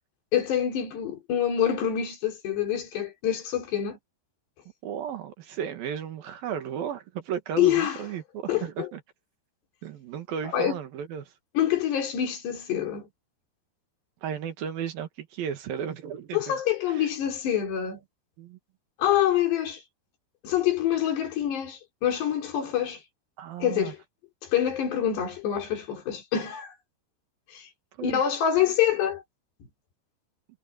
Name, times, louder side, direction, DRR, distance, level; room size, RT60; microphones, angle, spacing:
voice 1, 0.3-4.0 7.6-8.0 8.5-8.9 10.4-10.8 11.6-13.1 16.3-18.0 19.0-19.8 20.4-23.0 23.6-24.0 24.4-26.7 27.5-27.7 28.0-29.2, left 10 dB, 85° left, 6.0 m, -26 dB
voice 2, 4.8-9.0 9.8-11.3 14.2-16.6 17.0-17.1 18.4-18.6 23.4-23.9 28.0-28.2, right 8 dB, 65° right, 3.2 m, -34 dB
omnidirectional pair, 4.7 m